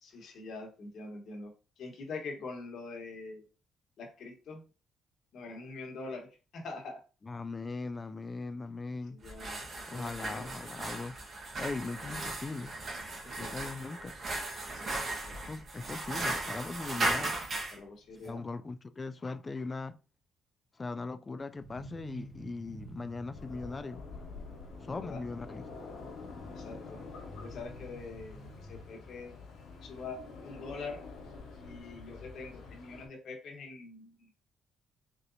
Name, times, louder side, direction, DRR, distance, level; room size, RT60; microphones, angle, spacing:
voice 1, 0.0-3.4 4.0-4.7 5.3-7.0 9.1-9.6 9.9-10.5 13.2-13.5 14.7-15.4 17.7-18.4 24.8-25.2 26.5-27.0 27.3-29.3 29.8-31.1 31.6-34.3, left 3 dB, 65° left, 1.2 m, -44 dB
voice 2, 7.2-9.2 9.9-11.2 11.6-12.8 13.4-14.2 15.5-17.4 18.2-20.0 20.8-24.0 24.8-25.6, left 3 dB, 30° left, 0.3 m, -39 dB
sound 1, 9.2-17.8, right 2 dB, 45° right, 1.3 m, -36 dB
sound 2, 21.6-29.5, right 1 dB, 10° left, 1.9 m, -52 dB
sound 3, 23.3-33.1, left 4 dB, 90° left, 1.3 m, -47 dB
3.9 x 3.3 x 2.6 m
cardioid pair, 90°, 0 cm